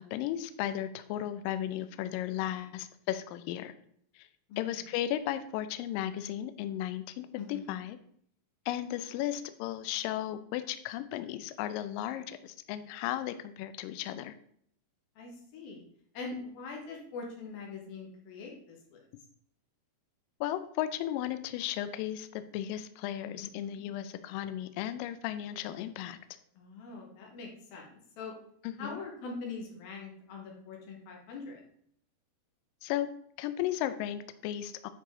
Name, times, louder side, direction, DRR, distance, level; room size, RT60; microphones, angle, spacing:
voice 1, 0.0-3.7 4.2-4.3 4.6-8.0 8.7-14.3 20.4-26.2 28.6-29.0 32.8-33.1 33.4-34.9, left 12 dB, 85° left, 11 dB, 1.9 m, -35 dB
voice 2, 4.5-4.8 7.3-7.7 12.1-12.2 15.2-15.8 16.1-19.0 23.6-23.8 26.6-28.3 28.8-31.6, left 4 dB, 70° left, 0 dB, 3.4 m, -43 dB
9.4 x 4.9 x 3.7 m, 0.65 s
omnidirectional pair, 4.5 m